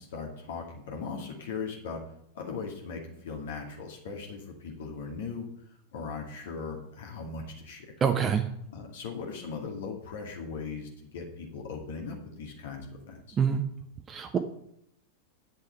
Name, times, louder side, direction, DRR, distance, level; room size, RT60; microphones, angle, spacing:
voice 1, 0.0-2.0 2.3-5.5 5.9-7.9 8.7-13.4, left 5 dB, 60° left, 1 dB, 2.3 m, -39 dB
voice 2, 8.0-8.4 13.4-13.7 14.1-14.4, right 7 dB, 25° right, 6 dB, 0.9 m, -25 dB
8.7 x 6.7 x 8.1 m, 0.73 s
figure-of-eight pair, 90°, 0 cm